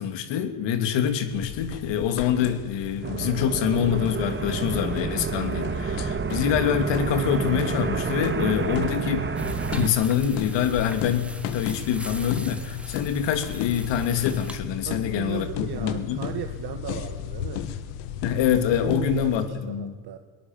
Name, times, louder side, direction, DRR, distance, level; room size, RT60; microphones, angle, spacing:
voice 1, 0.0-9.3 9.7-16.2 18.2-20.0, left 8 dB, 70° left, 10 dB, 2.9 m, -25 dB
sound 1, 1.3-19.5, left 10 dB, 90° left, 1.7 m, -35 dB
sound 2, 3.0-9.9, right 5 dB, 25° right, 1.7 m, -29 dB
sound 3, 9.4-14.6, right 1 dB, 5° right, 1.7 m, -42 dB
voice 2, 14.9-17.7 18.7-20.2, right 11 dB, 55° right, 7 dB, 1.8 m, -36 dB
22.5 x 19.0 x 7.5 m, 1.4 s
supercardioid pair, 95°, 45 cm